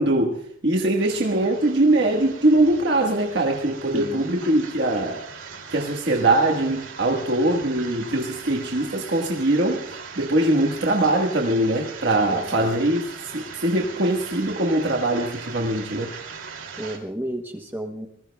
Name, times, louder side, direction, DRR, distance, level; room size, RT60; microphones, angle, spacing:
voice 1, 0.0-5.3 5.7-9.9 10.1-16.1, right 1 dB, 55° right, 1.4 m, -22 dB
sound 1, 1.0-17.0, right 5 dB, 80° right, 2.6 m, -40 dB
voice 2, 3.9-4.2 12.3-12.8 16.8-18.1, right 1 dB, 10° right, 0.9 m, -32 dB
26.0 x 20.5 x 2.3 m
head